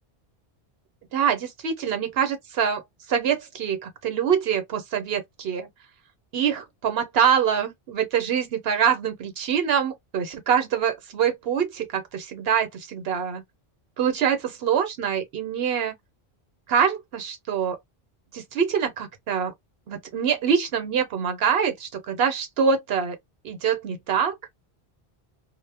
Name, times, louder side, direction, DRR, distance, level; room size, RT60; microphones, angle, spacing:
voice 1, 1.1-2.8 3.1-5.7 6.3-13.4 14.0-15.9 16.7-17.8 18.3-19.5 19.9-23.2 23.4-24.4, right 7 dB, 70° right, 0.9 m, -24 dB
2.1 x 2.0 x 3.2 m
omnidirectional pair, 1.1 m